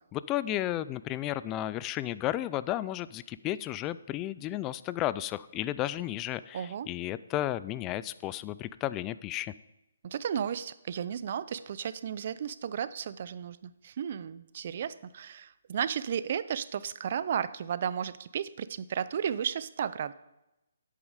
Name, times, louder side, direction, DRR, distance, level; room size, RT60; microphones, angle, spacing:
voice 1, 0.1-9.5, left 14 dB, 20° left, 16 dB, 0.3 m, -33 dB
voice 2, 6.5-6.9 10.0-20.1, right 8 dB, 50° right, 16 dB, 0.5 m, -34 dB
10.5 x 8.4 x 5.0 m, 0.94 s
hypercardioid pair, 155°, 0 cm